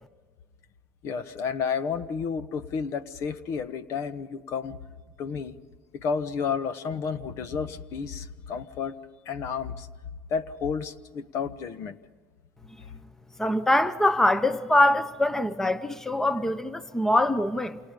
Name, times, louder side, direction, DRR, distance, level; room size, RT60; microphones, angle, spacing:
voice 1, 1.0-4.8 5.2-5.5 5.9-9.0 9.3-9.9 10.3-12.0, left 6 dB, 55° left, 1.3 m, -31 dB
voice 2, 13.4-17.8, left 1 dB, 5° left, 1.0 m, -23 dB
29.0 x 27.5 x 5.2 m
supercardioid pair, 115°, 6 cm